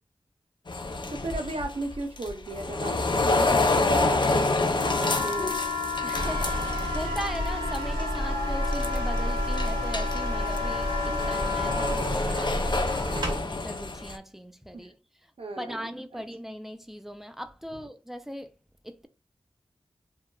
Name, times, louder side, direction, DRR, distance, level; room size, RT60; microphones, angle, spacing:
sound 1, 0.7-7.5 7.7-8.2 8.6-9.2 9.6-14.2, left 3 dB, 45° left, 0.5 m, -28 dB
voice 1, 1.1-3.0 3.2-5.5 14.7-14.9 15.4-15.9, right 2 dB, 65° right, 0.7 m, -35 dB
sound 2, 4.8-12.0, left 4 dB, 70° left, 0.8 m, -33 dB
voice 2, 6.0-15.3 15.6-18.5 18.8-19.1, equal, 5° right, 0.4 m, -39 dB
sound 3, 6.1-13.4, equal, 45° right, 1.3 m, -30 dB
2.8 x 2.2 x 2.3 m
cardioid pair, 50°, 11 cm